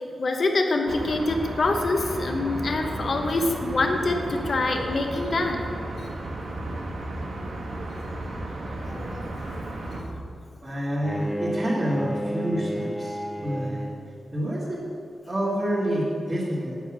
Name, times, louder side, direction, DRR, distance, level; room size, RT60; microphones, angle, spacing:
voice 1, 0.2-5.6 8.7-9.6, left 2 dB, 45° left, 4 dB, 0.9 m, -25 dB
sound 1, 0.9-10.0, right 1 dB, 75° right, 2.0 m, -34 dB
voice 2, 10.6-13.9 14.3-14.8 15.3-16.8, equal, 25° right, -9 dB, 1.9 m, -28 dB
Bowed string instrument, 11.0-14.2, equal, ahead, 0.5 m, -31 dB
9.3 x 8.1 x 6.1 m, 2.7 s
wide cardioid pair, 170°, 0 cm